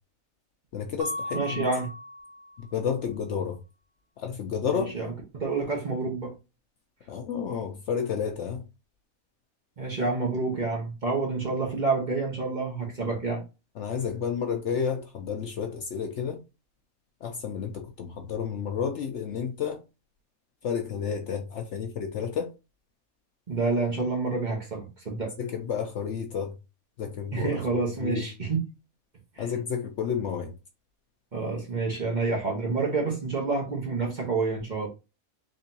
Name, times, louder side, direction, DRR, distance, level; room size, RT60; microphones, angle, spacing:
voice 1, 0.7-1.7 2.6-3.6 4.2-4.9 7.1-8.6 13.8-16.4 17.2-19.8 20.6-22.5 25.4-26.5 27.0-27.6 28.0-28.3 29.4-30.5, left 7 dB, 65° left, 0.8 m, -31 dB
Mallet percussion, 1.0-2.8, left 1 dB, 70° right, 1.2 m, -37 dB
voice 2, 1.3-1.9 4.7-6.3 9.8-13.4 23.5-25.3 27.3-28.7 29.4-29.5 31.3-34.9, right 3 dB, 35° right, 1.1 m, -28 dB
3.8 x 3.3 x 2.7 m
omnidirectional pair, 1.5 m